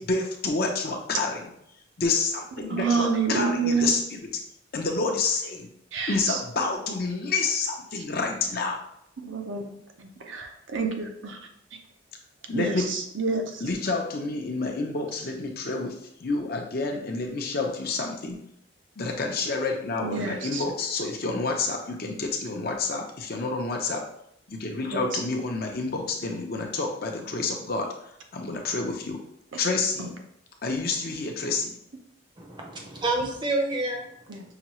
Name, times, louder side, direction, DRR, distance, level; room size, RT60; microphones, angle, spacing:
voice 1, 0.0-1.5 2.0-4.2 4.7-5.7 6.1-8.8 12.5-12.9 13.6-18.4 19.0-24.1 24.5-27.9 28.3-29.2 29.6-30.1 30.6-31.8, left 3 dB, 50° left, 2 dB, 0.6 m, -28 dB
voice 2, 2.6-3.9 5.9-6.4 9.2-9.7 10.0-11.4 12.5-13.6 20.0-20.6 24.9-25.2 30.0-30.1 34.3-34.4, right 4 dB, 70° right, 3 dB, 0.6 m, -28 dB
voice 3, 32.4-34.4, right 2 dB, 25° right, 1 dB, 0.6 m, -29 dB
5.7 x 2.3 x 3.0 m, 0.73 s
head